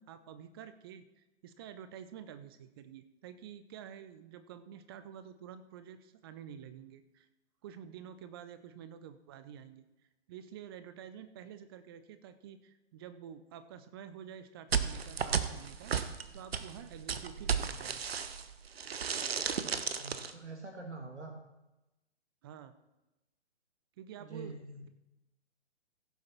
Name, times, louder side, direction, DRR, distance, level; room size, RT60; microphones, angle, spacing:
voice 1, 0.0-7.3 7.6-9.8 10.3-16.0 16.3-18.0 22.4-22.7 24.0-24.6, right 9 dB, 20° right, 11 dB, 0.6 m, -49 dB
sound 1, 14.7-18.5 18.8-20.3, right 7 dB, 60° right, 0.9 m, -34 dB
voice 2, 19.5-21.4 24.2-24.8, right 3 dB, 80° right, 3 dB, 1.6 m, -46 dB
16.0 x 7.6 x 4.2 m, 0.98 s
figure-of-eight pair, 125°, 34 cm